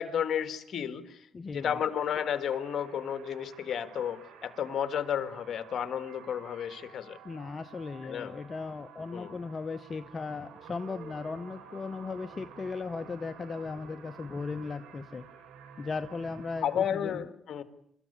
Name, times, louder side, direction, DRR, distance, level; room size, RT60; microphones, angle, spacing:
voice 1, 0.0-7.2 8.0-8.4 9.1-9.3 16.6-17.6, left 8 dB, 60° left, 12 dB, 1.8 m, -32 dB
voice 2, 1.3-1.7 7.2-15.3 15.8-17.2, left 4 dB, 35° left, 9 dB, 0.9 m, -37 dB
sound 1, 1.6-16.7, right 6 dB, 90° right, 4.4 m, -51 dB
24.5 x 13.5 x 9.9 m, 0.72 s
cardioid pair, 90°, 0 cm